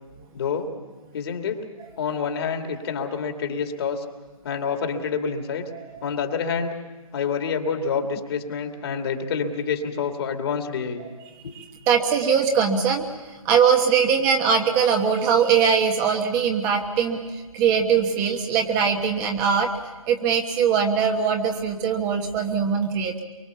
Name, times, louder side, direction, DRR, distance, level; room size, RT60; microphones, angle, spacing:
voice 1, 0.3-0.7 1.1-1.7 2.0-4.0 4.4-5.6 6.0-6.8 7.1-11.0 11.4-11.5, left 6 dB, 45° left, 4 dB, 2.5 m, -27 dB
voice 2, 11.5-13.1 13.4-19.7 20.1-23.2, right 7 dB, 20° right, 3 dB, 1.4 m, -21 dB
24.0 x 23.5 x 7.1 m, 1.2 s
figure-of-eight pair, 145°, 18 cm